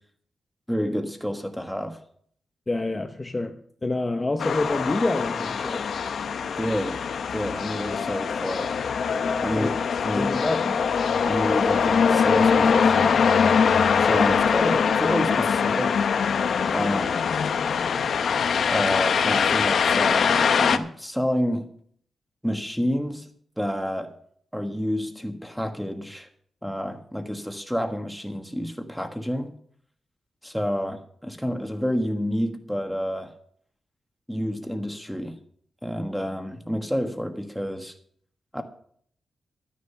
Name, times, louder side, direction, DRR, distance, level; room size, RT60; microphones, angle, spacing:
voice 1, 0.7-2.0 6.4-7.0 7.3-8.7 9.4-9.7 10.0-10.4 10.6-10.8 11.2-13.2 14.0-16.1 16.7-17.2 18.7-21.7 22.4-23.3 23.6-24.1 24.5-26.3 26.6-29.6 30.4-33.3 34.3-35.3 35.8-37.9 38.5-38.6, equal, ahead, 5 dB, 1.4 m, -29 dB
voice 2, 2.7-5.8 6.2-6.3 9.5-9.7 10.2-10.9, left 2 dB, 20° left, 6 dB, 0.8 m, -28 dB
sound 1, 4.4-20.8, left 6 dB, 70° left, 0.8 m, -22 dB
12.0 x 10.0 x 5.7 m, 0.62 s
wide cardioid pair, 125°, 0 cm